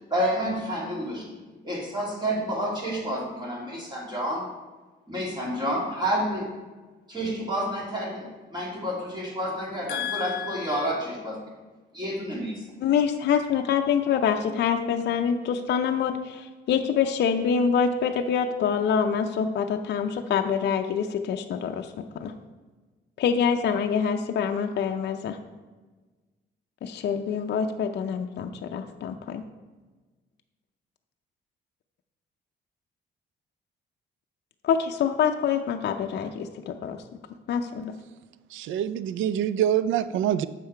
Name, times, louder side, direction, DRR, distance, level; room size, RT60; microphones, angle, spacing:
voice 1, 0.1-1.3 1.6-4.5 5.1-6.5 7.1-11.4 11.9-12.7, equal, 20° right, -3 dB, 2.4 m, -29 dB
voice 2, 9.9-10.9 12.8-22.3 23.2-25.4 26.8-29.4 34.6-37.0 37.5-37.9, left 7 dB, 60° left, 5 dB, 0.5 m, -26 dB
voice 3, 38.5-40.5, right 10 dB, 80° right, 15 dB, 0.4 m, -25 dB
7.4 x 5.6 x 4.5 m, 1.3 s
cardioid pair, 90°, 20 cm